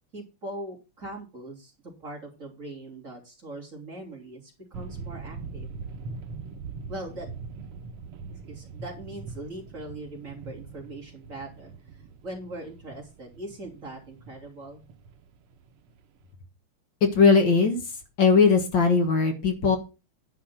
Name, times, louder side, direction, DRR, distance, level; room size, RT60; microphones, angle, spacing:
voice 1, 0.1-1.7 2.0-5.7 6.9-7.3 8.5-14.8, right 1 dB, 35° right, -2 dB, 3.7 m, -41 dB
sound 1, 4.7-16.2, right 4 dB, 90° right, 1.9 m, -42 dB
voice 2, 17.0-17.9 18.2-19.8, left 5 dB, 60° left, 5 dB, 2.1 m, -19 dB
10.5 x 5.9 x 5.8 m, 0.30 s
omnidirectional pair, 2.4 m